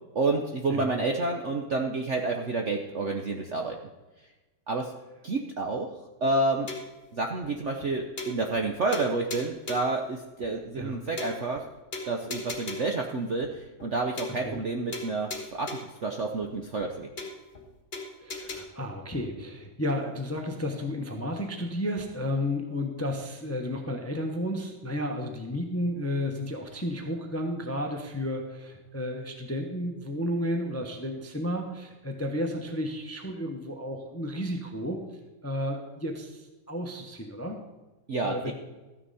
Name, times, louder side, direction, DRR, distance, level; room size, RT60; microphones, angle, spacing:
voice 1, 0.1-3.8 4.7-4.9 5.2-5.9 6.2-6.7 7.1-11.6 12.1-17.1 38.1-38.5, right 3 dB, 55° right, 2 dB, 0.8 m, -29 dB
sound 1, 6.7-7.0 7.4-7.5 7.8-7.9 8.2-8.7 8.9-10.0 10.4-10.5 10.8-10.9 11.2-11.6 11.9-13.0 13.4-13.5 13.8-13.9 14.2-14.7 14.9-16.0 16.4-16.5 16.8-16.9 17.2-17.6 17.9-18.6, left 3 dB, 35° left, 1.7 m, -38 dB
voice 2, 18.2-35.0 35.4-37.6 38.2-38.5, left 1 dB, 10° left, 3 dB, 0.7 m, -32 dB
13.5 x 9.7 x 4.1 m, 1.1 s
omnidirectional pair, 2.1 m